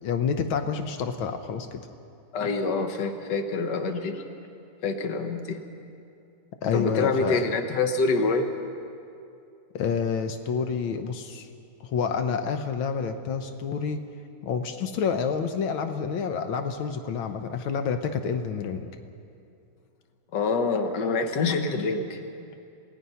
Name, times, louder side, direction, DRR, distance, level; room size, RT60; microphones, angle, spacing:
voice 1, 0.0-1.8 6.6-7.4 9.7-11.5 11.8-14.0 14.4-18.9, left 6 dB, 85° left, 7 dB, 1.7 m, -28 dB
voice 2, 2.3-4.2 4.8-5.6 6.7-8.5 20.3-22.2, left 3 dB, 60° left, 6 dB, 1.8 m, -26 dB
28.0 x 18.0 x 5.7 m, 2.6 s
omnidirectional pair, 2.1 m